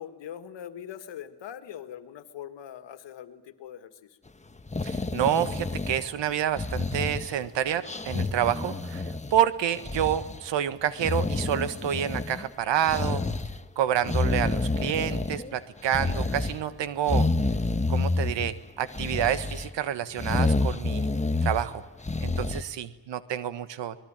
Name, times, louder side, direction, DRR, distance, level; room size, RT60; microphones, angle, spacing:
voice 1, 0.0-4.2, left 10 dB, 85° left, 10 dB, 2.0 m, -42 dB
sound 1, 4.6-6.2 6.6-7.5 7.8-9.4 9.7-10.4 11.0-12.5 12.8-13.6 14.0-15.5 15.9-16.6 17.1-18.5 18.9-19.7 20.2-21.7 22.0-22.6, left 3 dB, 15° left, 1.4 m, -28 dB
voice 2, 4.8-13.2 13.7-17.3 17.9-21.1 21.4-21.8 22.2-23.9, right 10 dB, 85° right, 14 dB, 1.6 m, -28 dB
25.0 x 20.5 x 9.0 m, 1.2 s
cardioid pair, 75°, 43 cm